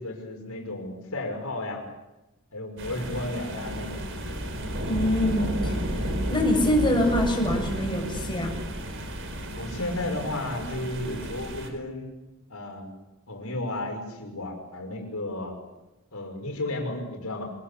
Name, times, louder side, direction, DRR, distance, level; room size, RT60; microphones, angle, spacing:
voice 1, 0.0-1.9 2.5-4.0 9.5-12.1 12.5-12.9 13.3-15.6 16.1-17.5, left 2 dB, 85° left, 2 dB, 5.9 m, -33 dB
sound 1, 2.8-11.7, right 1 dB, 60° right, 4.7 m, -32 dB
voice 2, 4.9-5.8 6.3-8.6, left 1 dB, 20° left, 0 dB, 7.2 m, -24 dB
26.0 x 19.5 x 8.6 m, 1.0 s
head